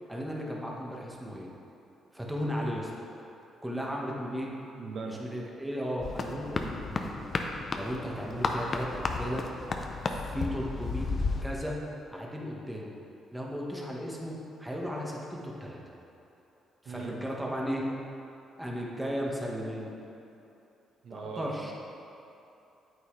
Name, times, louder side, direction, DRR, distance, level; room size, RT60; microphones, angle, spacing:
voice 1, 0.1-1.5 2.1-2.9 3.6-4.5 5.1-7.2 7.7-9.4 10.1-11.1 11.4-11.8 12.1-13.0 13.3-15.8 16.8-17.9 18.6-19.9 21.1-21.7, equal, 5° right, -3 dB, 1.5 m, -35 dB
voice 2, 4.8-5.3 16.9-17.2 21.0-21.7, right 4 dB, 65° right, 1 dB, 0.7 m, -39 dB
sound 1, 6.0-11.5, left 3 dB, 45° left, 0.7 m, -33 dB
9.3 x 8.3 x 3.3 m, 2.8 s
cardioid pair, 90°, 0 cm